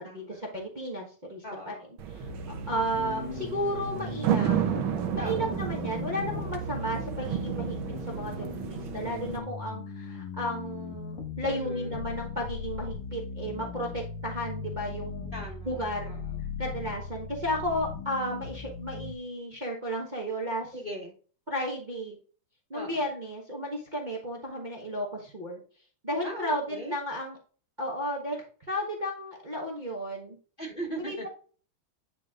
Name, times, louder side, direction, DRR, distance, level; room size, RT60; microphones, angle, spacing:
voice 1, 0.0-0.4 1.4-1.9 5.2-5.5 11.4-11.9 15.3-15.7 16.0-16.3 20.7-21.1 22.7-23.0 26.2-26.9 30.6-31.3, right 1 dB, 30° left, -1 dB, 1.2 m, -39 dB
voice 2, 0.5-1.7 2.1-2.3 2.7-4.8 5.1-15.3 15.6-16.1 16.6-20.7 21.5-22.2 22.7-25.6 26.0-27.4 27.8-28.4 28.7-30.4 31.0-31.2, equal, 25° right, -2 dB, 1.1 m, -33 dB
sound 1, 2.0-9.4, right 9 dB, 70° right, 1.6 m, -32 dB
sound 2, 2.2-19.1, left 4 dB, 90° left, 2.2 m, -38 dB
10.0 x 3.5 x 3.6 m, 0.41 s
omnidirectional pair, 2.4 m